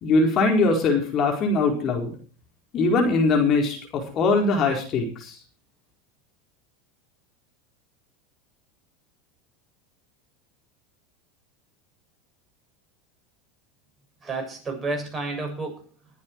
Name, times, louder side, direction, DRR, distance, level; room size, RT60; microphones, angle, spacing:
voice 1, 0.0-2.2 2.7-5.4, left 3 dB, 45° left, 1 dB, 4.3 m, -21 dB
voice 2, 14.2-16.2, right 3 dB, 20° right, 2 dB, 7.1 m, -31 dB
20.0 x 8.6 x 4.6 m, 0.40 s
hypercardioid pair, 90°, 0 cm